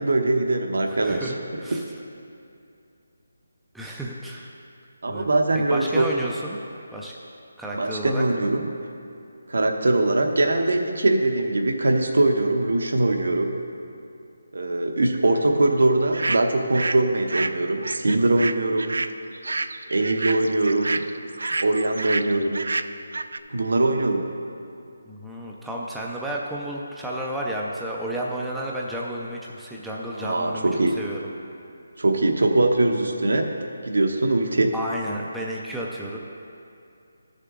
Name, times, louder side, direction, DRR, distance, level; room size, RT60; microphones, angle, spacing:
voice 1, 0.0-1.3 5.0-6.0 7.7-8.6 9.5-13.6 14.5-19.0 19.9-21.0 21.6-22.6 23.5-24.2 30.1-30.9 32.0-33.5 33.8-34.7, right 2 dB, 70° right, 4 dB, 1.0 m, -22 dB
voice 2, 0.9-1.8 3.7-4.5 5.1-5.3 5.5-6.6 6.9-7.1 7.6-8.2 25.1-30.7 31.0-31.2 34.7-36.2, right 1 dB, ahead, -4 dB, 0.3 m, -32 dB
sound 1, 16.1-17.0 17.3-23.4, right 3 dB, 90° right, 0.4 m, -29 dB
13.5 x 6.6 x 3.7 m, 2.6 s
hypercardioid pair, 180°, 0 cm